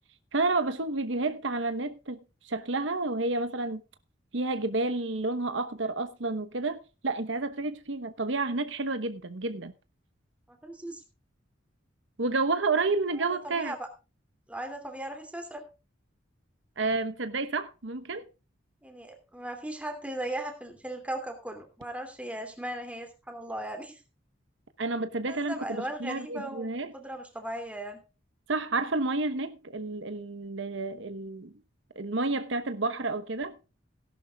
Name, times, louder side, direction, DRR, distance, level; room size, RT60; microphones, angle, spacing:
voice 1, 0.3-2.2 2.4-3.8 4.3-9.7 12.2-13.7 16.8-18.2 24.8-26.9 28.5-31.5 32.0-33.6, right 3 dB, 75° right, 1.1 m, -30 dB
voice 2, 10.5-11.0 13.2-13.9 14.5-15.6 18.8-24.0 25.3-28.0, right 1 dB, 5° right, 2.7 m, -38 dB
17.0 x 11.5 x 2.4 m
head